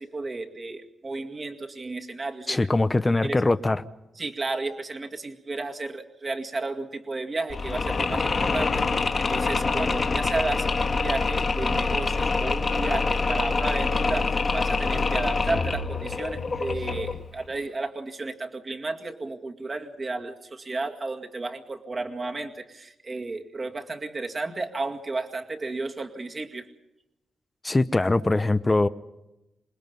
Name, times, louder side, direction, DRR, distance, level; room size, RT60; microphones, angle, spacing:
voice 1, 0.0-2.6 3.2-3.4 4.2-26.7, right 3 dB, 35° right, 3 dB, 2.2 m, -33 dB
voice 2, 2.5-3.8 27.6-28.9, left 2 dB, 20° left, 12 dB, 0.8 m, -22 dB
Mechanisms, 7.5-17.3, left 4 dB, 40° left, 2.0 m, -25 dB
27.5 x 20.0 x 5.5 m, 0.94 s
cardioid pair, 100°, 0 cm